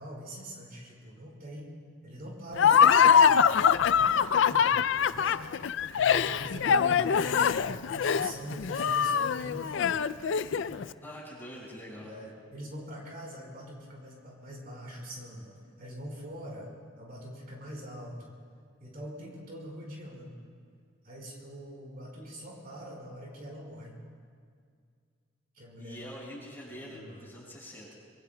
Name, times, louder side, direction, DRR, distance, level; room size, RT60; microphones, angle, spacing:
voice 1, 0.0-1.7 2.0-5.6 5.9-10.0 10.5-10.8 12.0-16.7 17.0-18.3 18.8-20.4 21.0-24.0 25.5-26.1 26.7-27.2, equal, 50° right, -2 dB, 4.6 m, -43 dB
Laughter, 2.6-10.8, left 7 dB, 65° left, 0.4 m, -23 dB
voice 2, 11.0-12.2 22.1-22.3 25.8-27.9, equal, 10° left, -5 dB, 5.5 m, -45 dB
26.5 x 24.0 x 2.3 m, 2.1 s
head